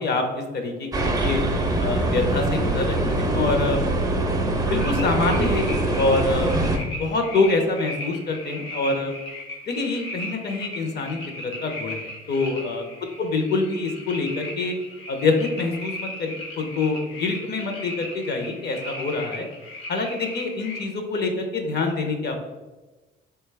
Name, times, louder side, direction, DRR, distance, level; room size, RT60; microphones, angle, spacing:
voice 1, 0.0-1.4 1.8-3.8 4.7-6.5 7.0-9.1 9.7-12.8 13.2-14.8 15.1-19.5 19.9-22.4, left 3 dB, 55° left, 4 dB, 0.6 m, -25 dB
sound 1, 0.9-6.8, right 2 dB, 20° right, 0.4 m, -23 dB
sound 2, 4.8-20.9, left 1 dB, 85° left, 0.9 m, -37 dB
3.7 x 2.2 x 3.2 m, 1.2 s
cardioid pair, 90°, 20 cm